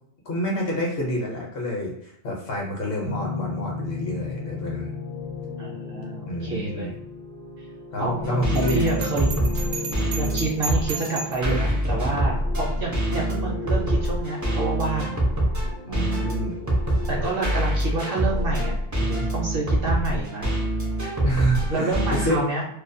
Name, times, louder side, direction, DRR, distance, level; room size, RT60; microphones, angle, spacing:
voice 1, 0.3-4.9 6.3-6.9 7.9-9.0 15.0-15.2 15.8-16.6 21.2-22.4, equal, 55° left, -2 dB, 0.8 m, -28 dB
sound 1, 3.0-18.7, left 4 dB, 25° left, 0.5 m, -35 dB
voice 2, 5.6-6.9 8.0-9.5 10.2-15.1 15.9-16.3 17.1-20.5 21.7-22.6, right 3 dB, 60° right, -2 dB, 0.7 m, -29 dB
sound 2, 8.2-22.3, right 1 dB, 25° right, 0.4 m, -25 dB
Bell, 8.5-11.5, right 5 dB, 80° right, 0.9 m, -34 dB
2.4 x 2.2 x 2.5 m, 0.75 s
omnidirectional pair, 1.3 m